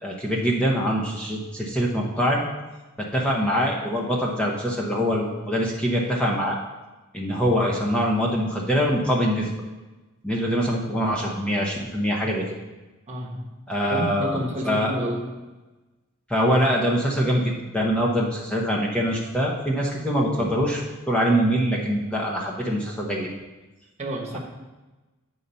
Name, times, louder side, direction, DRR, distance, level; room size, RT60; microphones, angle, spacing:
voice 1, 0.0-2.4 3.0-6.6 7.1-9.5 10.2-12.4 13.7-14.4 14.6-14.9 16.3-23.3, equal, 5° left, -3 dB, 0.9 m, -24 dB
voice 2, 13.1-13.5 13.9-15.4 24.0-24.4, equal, 30° right, -1 dB, 1.2 m, -30 dB
8.3 x 4.0 x 5.5 m, 1.1 s
head